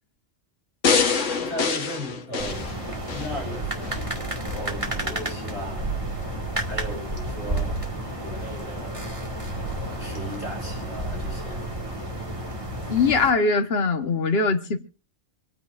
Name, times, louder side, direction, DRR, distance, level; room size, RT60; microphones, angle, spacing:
sound 1, 0.8-3.3 3.8-3.9, left 5 dB, 85° left, 1.6 m, -24 dB
voice 1, 1.4-2.6 3.1-4.0 4.4-5.9 6.7-7.7 8.2-9.1 9.8-11.6, equal, 45° right, 6.7 m, -36 dB
sound 2, 2.4-13.3, right 1 dB, 25° right, 2.0 m, -31 dB
voice 2, 12.9-14.8, left 4 dB, 55° left, 1.5 m, -21 dB
26.0 x 9.7 x 2.5 m
omnidirectional pair, 1.2 m